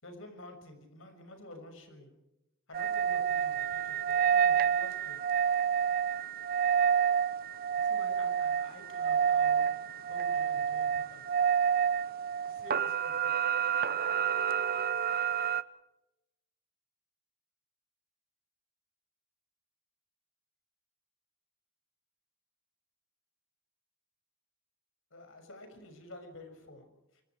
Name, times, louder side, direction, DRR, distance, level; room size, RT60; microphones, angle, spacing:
voice 1, 0.0-2.1 2.7-5.2 7.8-11.2 12.4-13.4 25.1-27.2, left 1 dB, 70° left, 6 dB, 6.4 m, -50 dB
sound 1, 2.7-15.6, right 8 dB, 45° right, 0.8 m, -29 dB
25.5 x 25.5 x 4.8 m, 0.88 s
head